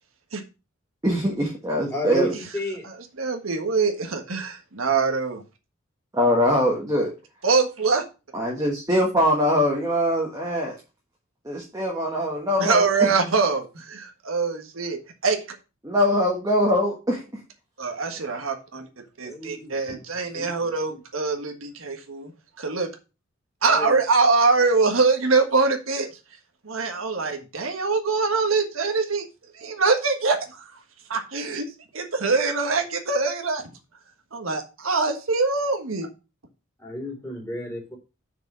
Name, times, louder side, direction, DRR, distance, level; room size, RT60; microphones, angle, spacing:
voice 1, 1.0-2.3 6.1-7.1 8.3-10.7 11.4-13.1 15.8-17.2, equal, 15° right, -2 dB, 1.5 m, -22 dB
voice 2, 1.9-2.9 19.2-19.8 20.3-21.0 23.6-24.0 36.8-38.0, left 1 dB, 15° left, -2 dB, 3.5 m, -32 dB
voice 3, 3.2-5.4 7.4-8.0 12.6-15.4 17.8-18.9 19.2-22.3 22.6-22.9 23.6-26.1 26.6-29.2 29.5-30.6 31.1-31.7 31.9-33.7 34.3-36.1, right 4 dB, 85° right, 4 dB, 1.6 m, -23 dB
6.3 x 5.0 x 6.2 m, 0.30 s
head